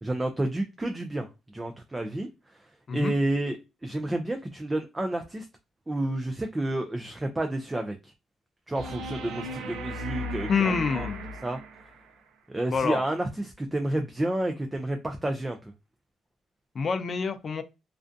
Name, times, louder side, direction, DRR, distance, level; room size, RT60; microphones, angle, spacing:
voice 1, 0.0-1.3 1.5-2.3 2.9-5.5 5.9-8.1 8.7-11.1 11.4-11.6 12.5-15.6, right 1 dB, 15° right, 0.4 m, -30 dB
sound 1, 8.8-12.1 14.8-14.9, equal, 85° right, 0.5 m, -36 dB
voice 2, 10.5-11.3 12.7-13.0 16.7-17.6, left 5 dB, 45° left, 0.5 m, -27 dB
2.5 x 2.1 x 2.5 m
cardioid pair, 90°, 0 cm